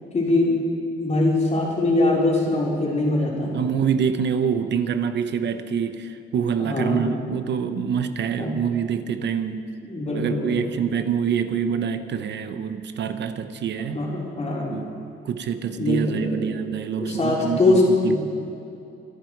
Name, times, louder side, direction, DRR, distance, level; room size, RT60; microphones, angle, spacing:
voice 1, 0.1-0.6 1.0-3.6 6.6-7.1 8.4-8.5 9.8-10.7 13.9-14.8 15.7-16.5 17.0-18.2, left 2 dB, 35° left, -3 dB, 4.2 m, -22 dB
voice 2, 3.5-9.7 10.2-14.0 14.7-15.0 15.2-18.2, right 7 dB, 60° right, 9 dB, 0.9 m, -26 dB
26.0 x 9.3 x 4.7 m, 2.6 s
cardioid pair, 90°, 20 cm